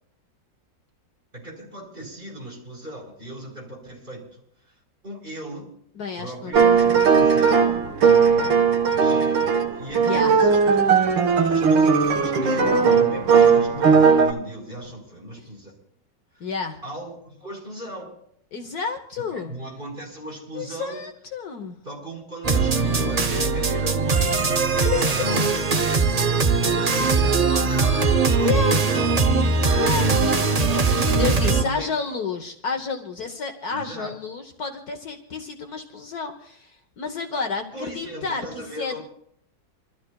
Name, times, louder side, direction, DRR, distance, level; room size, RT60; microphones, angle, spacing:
voice 1, 1.3-4.7 5.0-5.7 6.2-7.7 9.0-11.1 11.5-15.7 16.3-16.5 16.8-18.2 19.3-21.0 21.8-25.9 26.5-29.1 29.8-30.8 31.6-31.9 33.7-34.2 37.7-39.0, right 1 dB, 25° right, -2 dB, 4.9 m, -37 dB
voice 2, 6.0-7.1 10.0-10.3 16.4-16.8 18.5-19.6 20.5-21.8 24.8-25.4 25.7-25.8 28.4-28.8 29.7-30.1 31.1-39.0, left 5 dB, 60° left, 5 dB, 1.5 m, -30 dB
sound 1, 6.5-14.3, right 5 dB, 85° right, 1.9 m, -18 dB
sound 2, 22.4-31.6, right 4 dB, 55° right, 0.4 m, -20 dB
28.0 x 13.5 x 2.3 m, 0.70 s
omnidirectional pair, 2.0 m